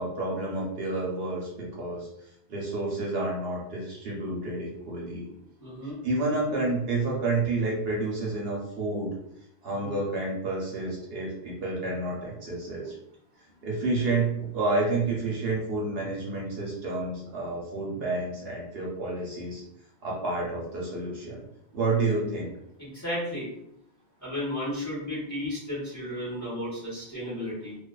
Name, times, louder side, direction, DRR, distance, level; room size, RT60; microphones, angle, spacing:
voice 1, 0.0-2.1 2.5-5.3 6.0-9.2 9.6-12.9 13.6-19.6 20.0-21.4 21.7-22.5, right 2 dB, 65° right, -3 dB, 0.9 m, -29 dB
voice 2, 5.6-6.0 9.8-9.9 22.8-23.5 24.2-27.8, left 1 dB, 15° left, -9 dB, 1.0 m, -33 dB
2.4 x 2.4 x 2.3 m, 0.74 s
omnidirectional pair, 1.2 m